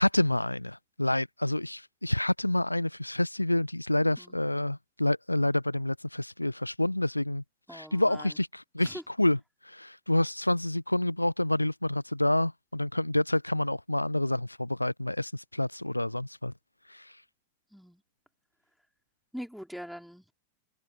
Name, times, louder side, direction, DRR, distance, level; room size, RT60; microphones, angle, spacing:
voice 1, 0.0-7.4 7.7-9.4 9.6-16.5 16.9-17.1, left 1 dB, 85° left, 0.6 m, -28 dB
voice 2, 7.7-8.4 8.8-9.0 17.7-18.0 19.3-20.3, equal, ahead, 4.0 m, -42 dB
open air
figure-of-eight pair, 90°, 0 cm